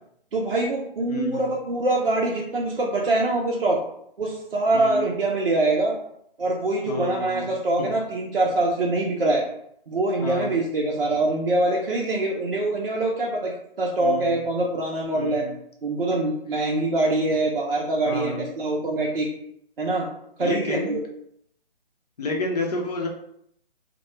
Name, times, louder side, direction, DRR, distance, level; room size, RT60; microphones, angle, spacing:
voice 1, 0.3-3.8 4.2-5.9 6.4-9.4 9.9-15.4 15.8-19.3 19.8-20.1 20.4-21.0, right 2 dB, 70° right, -2 dB, 0.6 m, -24 dB
voice 2, 1.1-1.5 4.7-5.1 6.9-7.5 7.8-7.9 10.2-10.5 14.0-14.3 15.1-15.5 18.0-18.5 20.4-20.9 22.2-23.1, left 2 dB, 45° left, 0 dB, 0.6 m, -30 dB
2.3 x 2.1 x 2.9 m, 0.72 s
figure-of-eight pair, 140°, 29 cm